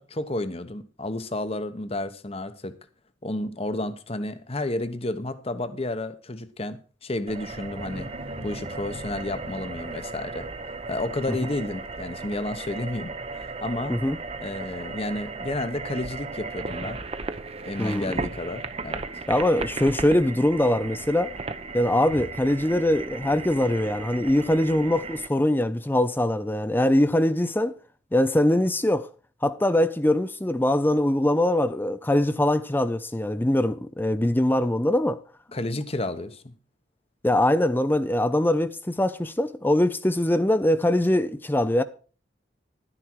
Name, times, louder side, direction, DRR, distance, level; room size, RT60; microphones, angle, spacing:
voice 1, 0.0-2.7 3.2-8.1 8.4-10.5 10.9-14.0 14.4-17.0 17.6-19.0 35.5-36.4, left 2 dB, 35° left, 1.0 m, -31 dB
sound 1, 7.3-25.3, right 3 dB, 35° right, 0.8 m, -36 dB
sound 2, 7.4-10.7 11.3-11.6 11.9-12.3 12.6-12.7 13.5-13.6 14.1-14.2 14.7-15.1 16.0-16.1 18.9-19.9 21.9-23.0 23.5-24.2, equal, 60° right, 1.7 m, -45 dB
voice 2, 17.8-18.1 19.3-21.4 21.7-27.7 28.1-29.1 29.4-35.2 37.2-41.8, left 1 dB, 10° left, 0.5 m, -22 dB
11.5 x 9.9 x 4.6 m
head